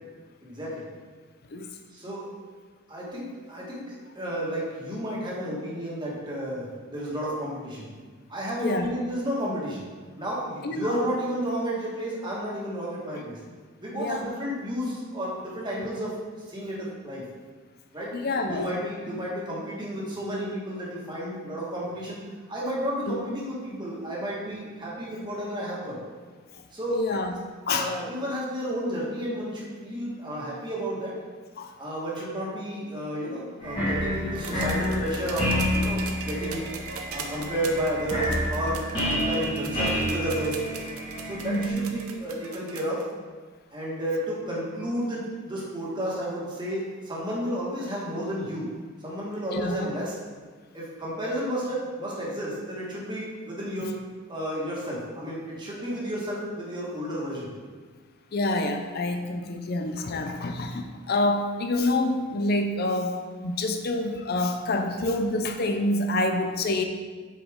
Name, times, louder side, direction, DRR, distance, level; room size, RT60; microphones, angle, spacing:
voice 1, 0.4-0.9 1.9-2.3 2.9-7.9 8.3-9.9 10.2-13.4 13.8-16.2 16.5-17.2 17.9-18.2 18.5-22.2 22.5-26.0 26.7-27.2 27.7-31.2 31.8-36.7 37.1-38.8 39.1-40.7 41.3-43.1 43.7-48.7 49.0-50.2 50.7-53.9 54.3-57.5, equal, 20° right, -5 dB, 1.7 m, -32 dB
voice 2, 8.6-8.9 10.6-11.0 13.9-14.3 18.1-18.7 23.1-23.2 26.9-27.3 27.7-27.9 31.6-31.7 41.4-41.9 49.5-49.8 58.3-66.8, left 2 dB, 45° left, 5 dB, 0.5 m, -27 dB
sound 1, 33.6-41.7, equal, 20° left, 1.8 m, -29 dB
sound 2, 34.4-43.0 44.2-44.3, right 5 dB, 85° right, 0.8 m, -40 dB
8.0 x 5.1 x 3.6 m, 1.5 s
head